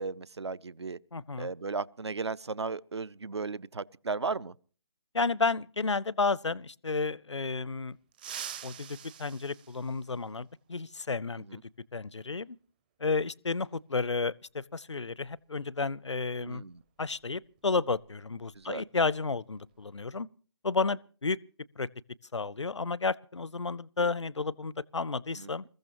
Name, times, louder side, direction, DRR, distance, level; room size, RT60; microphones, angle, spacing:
voice 1, 0.0-1.0 1.4-4.5 11.5-11.6 16.4-16.8 18.6-18.8 25.4-25.5, right 4 dB, 65° right, 0.6 m, -35 dB
voice 2, 1.1-1.5 5.1-8.0 8.6-11.6 11.9-12.6 13.0-16.6 17.0-20.3 20.6-21.4 21.8-21.9 22.3-25.7, left 4 dB, 80° left, 0.6 m, -32 dB
sound 1, 8.1-10.5 12.2-12.3 13.5-13.6 15.2-15.4 15.8-16.0 16.4-18.6 18.9-19.1 19.6-20.0, right 9 dB, 20° right, 0.6 m, -46 dB
27.5 x 14.5 x 3.0 m
figure-of-eight pair, 150°, 15 cm